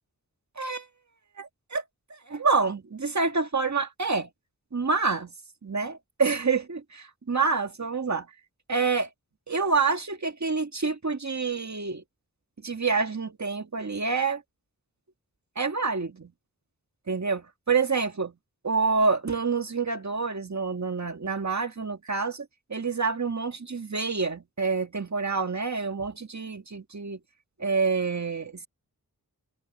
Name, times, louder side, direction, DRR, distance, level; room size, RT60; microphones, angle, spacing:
voice 1, 0.6-0.9 1.4-1.8 2.3-4.3 4.7-5.3 5.6-8.3 8.7-9.1 9.5-12.0 12.6-14.4 15.5-16.3 17.1-18.3 18.6-27.2 27.6-28.7, right 4 dB, 50° right, 1.8 m, -27 dB
wide cardioid pair, 65°, 36 cm